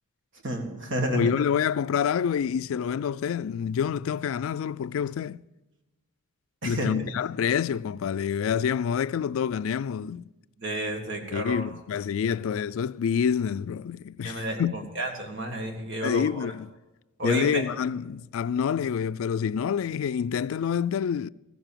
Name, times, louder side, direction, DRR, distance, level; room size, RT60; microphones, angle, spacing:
voice 1, 0.4-1.2 6.6-6.9 10.6-11.6 14.2-16.5 17.2-17.6, right 1 dB, 60° right, 1.9 m, -30 dB
voice 2, 1.1-5.4 6.6-10.2 11.3-14.8 16.0-16.7 17.2-21.3, left 7 dB, 75° left, 0.3 m, -27 dB
15.0 x 7.0 x 7.4 m
head